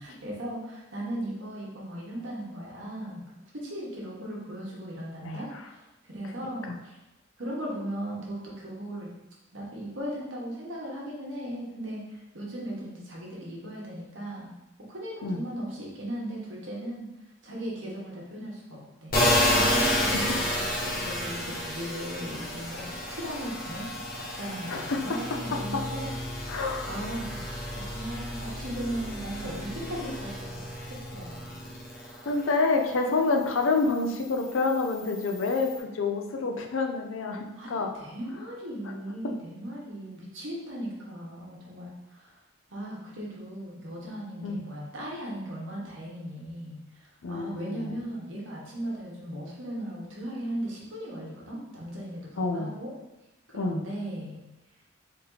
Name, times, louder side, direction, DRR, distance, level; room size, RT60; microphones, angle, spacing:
voice 1, 0.0-3.2 3.5-7.0 7.4-9.1 9.5-14.5 14.9-17.1 17.4-19.1 19.5-26.6 26.9-31.5 37.6-42.4 42.7-52.9 53.5-54.4, right 1 dB, 70° right, -4 dB, 1.2 m, -37 dB
sound 1, 19.1-32.5 32.9-35.8, left 1 dB, 45° left, 0.9 m, -31 dB
voice 2, 24.7-25.2 26.5-26.9 32.3-38.0 44.4-44.6 47.2-48.0 52.4-52.7 53.5-53.8, left 3 dB, 80° left, 3 dB, 0.5 m, -28 dB
3.8 x 2.8 x 3.8 m, 0.97 s
head